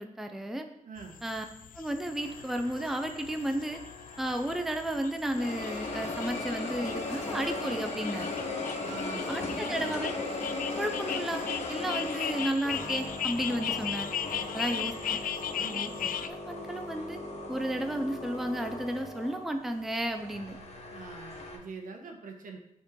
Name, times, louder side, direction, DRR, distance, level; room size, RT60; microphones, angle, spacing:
voice 1, 0.0-0.7 1.2-1.5 1.7-3.8 4.2-8.3 9.3-10.3 10.8-11.4 11.7-14.1 14.5-15.2 15.7-17.2 17.5-20.6, right 1 dB, ahead, 5 dB, 0.5 m, -33 dB
voice 2, 0.8-1.2 8.8-9.9 14.6-14.9 15.6-16.0 20.9-22.6, right 4 dB, 75° right, 2 dB, 1.3 m, -44 dB
sound 1, 1.0-16.3, left 9 dB, 90° left, 0.4 m, -38 dB
sound 2, 2.2-4.9 5.3-21.6, left 2 dB, 55° left, 1.3 m, -38 dB
7.8 x 4.5 x 4.6 m, 0.79 s
wide cardioid pair, 160°, 14 cm